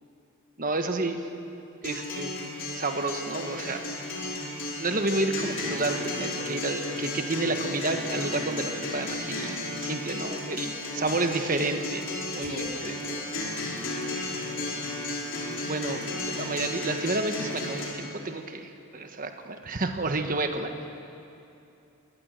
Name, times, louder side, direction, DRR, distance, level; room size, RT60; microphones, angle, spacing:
voice 1, 0.6-1.2 1.8-2.3 2.7-4.1 4.8-12.1 12.3-12.9 14.6-14.9 15.6-16.0 16.4-20.9, right 2 dB, 40° right, 6 dB, 1.3 m, -30 dB
Acoustic guitar, 1.8-17.8, left 2 dB, 60° left, 4.6 m, -34 dB
voice 2, 12.4-13.3 15.8-16.7, left 1 dB, 85° left, 0 dB, 3.2 m, -42 dB
22.5 x 19.5 x 6.6 m, 2.7 s
head